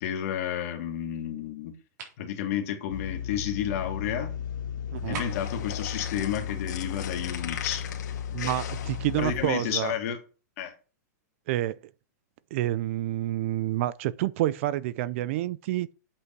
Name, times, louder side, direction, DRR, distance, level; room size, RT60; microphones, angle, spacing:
voice 1, 0.0-1.8 2.2-4.4 5.1-7.9 9.2-10.2 10.6-10.7, left 9 dB, 50° left, 2.1 m, -31 dB
sound 1, 1.9-2.2 5.1-5.6, right 4 dB, 70° right, 3.8 m, -39 dB
sound 2, 2.9-9.4, left 8 dB, 85° left, 1.4 m, -35 dB
voice 2, 4.9-5.2 8.3-9.9 11.5-11.8 12.5-15.9, right 15 dB, 45° right, 0.4 m, -28 dB
sound 3, 5.0-10.0, left 9 dB, 70° left, 1.9 m, -41 dB
8.3 x 5.8 x 4.6 m
supercardioid pair, 160°, 10 cm